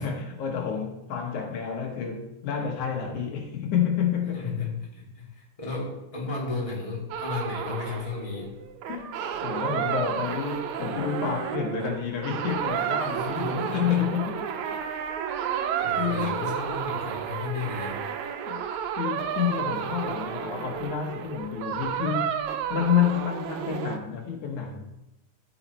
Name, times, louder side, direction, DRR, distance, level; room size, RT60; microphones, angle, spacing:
voice 1, 0.0-4.7 8.9-14.5 15.9-16.4 18.5-18.6 18.9-22.4 22.7-24.8, left 8 dB, 85° left, 2.8 m, -29 dB
voice 2, 4.3-8.6 13.1-14.0 15.8-18.0, left 4 dB, 10° left, 2.2 m, -34 dB
sound 1, 7.1-24.0, right 8 dB, 80° right, 2.1 m, -31 dB
13.0 x 5.7 x 4.3 m
omnidirectional pair, 3.3 m